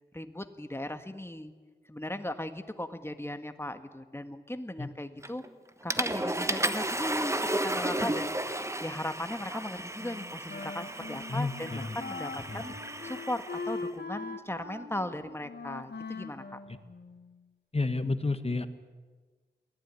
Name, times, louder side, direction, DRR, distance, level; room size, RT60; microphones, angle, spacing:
voice 1, 0.1-1.5 1.9-5.4 5.8-16.6, left 1 dB, 15° left, 9 dB, 1.7 m, -38 dB
Water / Toilet flush, 5.2-5.5 5.9-13.8, right 1 dB, 15° right, 1.3 m, -33 dB
Wind instrument woodwind instrument, 10.0-17.5, left 3 dB, 70° left, 2.0 m, -42 dB
voice 2, 11.3-12.0 12.5-12.6 17.7-18.7, left 3 dB, 35° left, 10 dB, 1.7 m, -30 dB
23.0 x 17.5 x 9.7 m, 1.4 s
wide cardioid pair, 70°, 18 cm